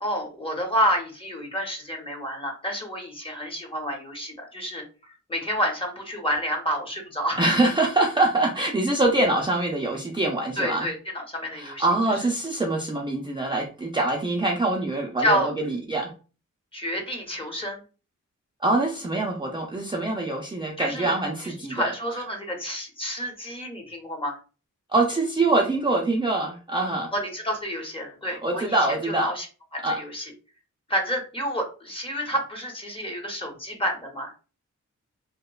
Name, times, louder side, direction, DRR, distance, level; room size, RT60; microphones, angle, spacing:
voice 1, 0.0-4.8 5.3-7.4 10.6-11.8 15.2-15.5 16.7-17.8 20.8-21.1 21.7-24.4 27.1-28.6 29.1-29.4 29.7-30.2 30.9-34.3, equal, 15° left, 1 dB, 0.7 m, -29 dB
voice 2, 7.4-10.9 11.5-16.1 18.6-22.2 24.9-27.1 28.3-29.3 29.8-30.0, right 2 dB, 15° right, -1 dB, 0.4 m, -24 dB
2.9 x 2.0 x 2.2 m, 0.35 s
wide cardioid pair, 100°, 31 cm